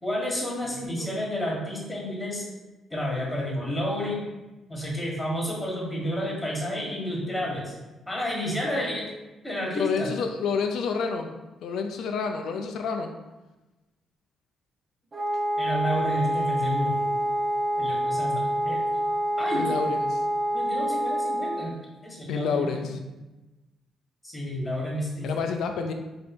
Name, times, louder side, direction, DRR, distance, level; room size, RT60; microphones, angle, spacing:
voice 1, 0.0-2.5 2.9-4.2 4.7-7.7 8.1-9.1 9.4-10.1 15.6-16.9 17.8-18.3 18.6-18.8 19.4-19.7 20.5-21.7 22.0-22.6 24.2-25.3, equal, 10° left, -3 dB, 1.4 m, -30 dB
voice 2, 0.6-1.1 9.7-11.3 11.6-13.1 16.0-17.1 19.5-20.3 22.3-23.0 25.2-25.9, left 5 dB, 75° left, 5 dB, 0.4 m, -30 dB
Wind instrument woodwind instrument, 15.1-21.7, right 1 dB, 35° right, 0.5 m, -27 dB
3.3 x 2.7 x 4.2 m, 1.1 s
cardioid pair, 90°, 0 cm